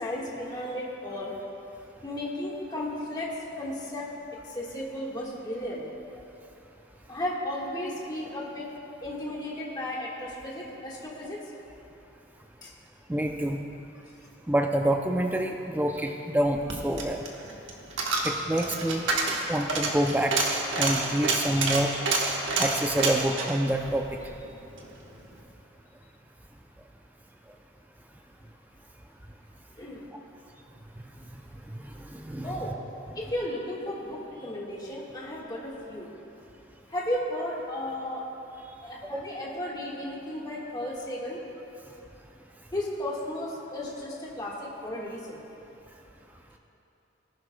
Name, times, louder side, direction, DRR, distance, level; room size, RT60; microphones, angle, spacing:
voice 1, 0.0-1.3 2.0-4.1 4.5-5.8 7.1-8.7 9.0-11.4 12.6-12.7 29.8-30.0 32.4-32.8 33.1-36.1 36.9-38.2 38.8-41.4 42.7-45.4, left 1 dB, 20° left, -4 dB, 1.5 m, -34 dB
voice 2, 13.1-13.6 14.5-17.2 18.2-19.0 19.5-20.3 20.8-21.9 22.6-24.0 32.1-32.8 39.1-39.2, right 1 dB, 10° right, 3 dB, 0.4 m, -27 dB
Coin (dropping), 16.5-24.9 25.2-25.3, right 3 dB, 70° right, 1.2 m, -29 dB
18.0 x 11.0 x 2.2 m, 3.0 s
head